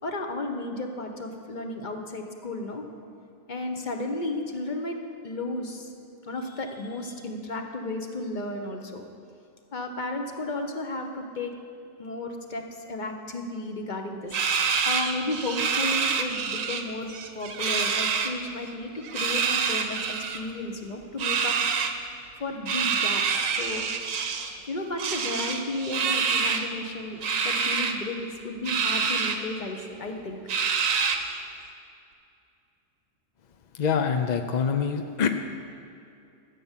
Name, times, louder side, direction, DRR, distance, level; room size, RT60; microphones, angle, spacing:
voice 1, 0.0-2.8 3.5-5.0 5.2-5.9 6.2-9.0 9.7-11.5 12.0-17.1 17.3-20.0 20.3-21.6 22.4-23.2 23.6-23.9 24.2-24.3 24.7-30.4, left 2 dB, 40° left, 4 dB, 1.1 m, -33 dB
sound 1, 14.3-16.8 17.1-18.3 19.0-20.4 21.2-21.9 22.7-24.5 25.0-26.7 27.2-27.9 28.7-29.4 29.8-29.9 30.5-31.4, right 6 dB, 75° right, 1.3 m, -26 dB
voice 2, 33.7-35.3, left 6 dB, 55° left, 6 dB, 0.4 m, -25 dB
13.5 x 7.3 x 7.4 m, 2.6 s
omnidirectional pair, 1.4 m